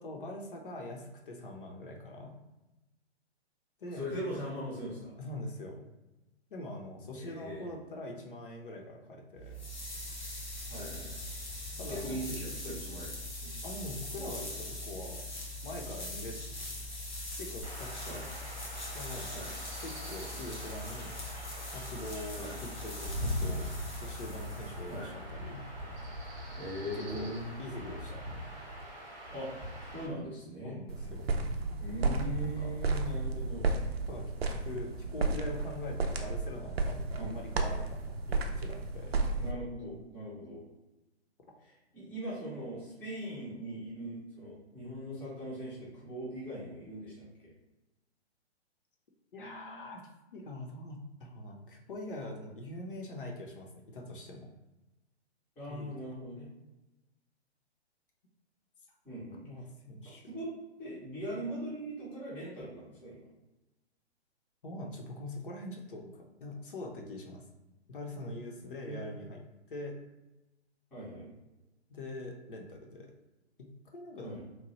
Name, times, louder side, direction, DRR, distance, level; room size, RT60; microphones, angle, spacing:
voice 1, 0.0-2.4 3.8-4.0 5.2-5.8 6.5-9.5 11.8-12.2 13.6-15.3 15.6-16.7 17.4-18.2 18.9-19.3 19.8-21.1 21.7-23.7 23.9-25.6 26.9-27.3 27.6-28.2 30.6-31.3 32.4-32.7 34.1-34.2 34.5-39.2 49.3-54.5 55.7-55.9 59.4-60.3 64.6-67.4 67.9-70.0 71.9-73.1 73.6-74.4, left 1 dB, 50° left, 0 dB, 0.6 m, -43 dB
voice 2, 3.9-5.2 7.1-7.7 10.7-11.2 11.9-13.1 13.4-13.5 18.1-18.2 19.3-19.5 22.4-22.5 24.9-25.1 26.5-27.5 29.3-29.5 29.9-30.8 31.7-33.7 37.2-37.4 39.4-40.6 41.6-47.5 55.6-56.5 59.0-59.5 60.0-60.5 60.8-63.2 68.8-69.2 70.9-71.3 74.2-74.4, equal, 5° left, -9 dB, 0.5 m, -40 dB
sound 1, 9.4-25.1, left 1 dB, 80° left, 1.1 m, -42 dB
Chirp tweet / Wind / Stream, 17.6-30.1, equal, 30° right, 0.8 m, -41 dB
sound 2, 30.9-39.5, right 3 dB, 60° right, 0.5 m, -33 dB
2.9 x 2.1 x 2.9 m, 1.0 s
figure-of-eight pair, 120°, 34 cm